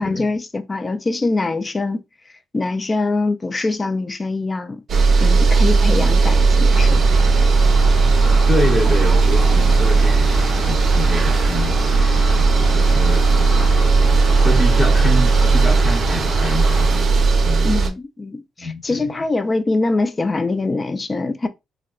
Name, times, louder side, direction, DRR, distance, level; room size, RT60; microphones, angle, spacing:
voice 1, 0.0-2.0 2.5-4.8 5.2-7.2 17.6-21.5, left 3 dB, 25° left, 0.3 m, -23 dB
sound 1, 4.9-17.9, right 4 dB, 55° right, 0.6 m, -16 dB
sound 2, 6.7-16.9, left 2 dB, 45° left, 1.0 m, -30 dB
voice 2, 8.5-12.3 12.7-13.3 14.4-17.1 17.4-17.7 18.6-19.1, left 1 dB, 5° left, 0.9 m, -26 dB
3.4 x 2.2 x 2.3 m
cardioid pair, 90°, 0 cm